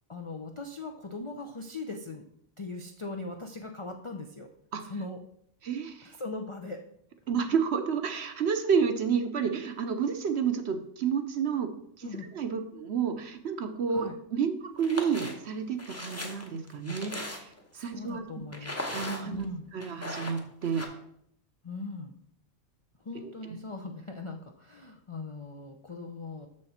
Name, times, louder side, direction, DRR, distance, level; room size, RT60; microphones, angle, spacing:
voice 1, 0.1-2.3 2.6-4.5 4.8-5.2 6.0-6.8 12.0-12.3 13.9-14.2 17.7-19.0 19.2-19.6 21.6-22.2 23.0-26.5, left 3 dB, 45° left, 3 dB, 0.4 m, -40 dB
voice 2, 5.6-6.1 7.3-11.7 12.0-17.5 17.8-18.5 18.9-19.5 19.7-20.8 23.2-23.3, right 6 dB, 60° right, 8 dB, 0.9 m, -30 dB
sound 1, 14.8-15.3 15.8-17.7 18.5-19.4 19.8-20.9, left 1 dB, 15° left, 0.8 m, -38 dB
6.6 x 6.4 x 4.3 m, 0.70 s
omnidirectional pair, 1.4 m